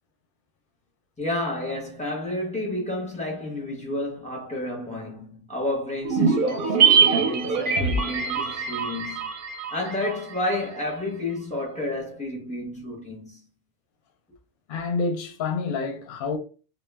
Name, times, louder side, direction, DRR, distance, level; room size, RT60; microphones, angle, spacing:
voice 1, 1.2-9.3 9.7-13.4, left 1 dB, 10° left, 0.6 m, -31 dB
sound 1, 6.0-10.5 10.8-10.9, right 5 dB, 55° right, 0.6 m, -23 dB
voice 2, 14.7-16.4, left 4 dB, 55° left, 0.6 m, -28 dB
2.3 x 2.0 x 3.2 m
omnidirectional pair, 1.3 m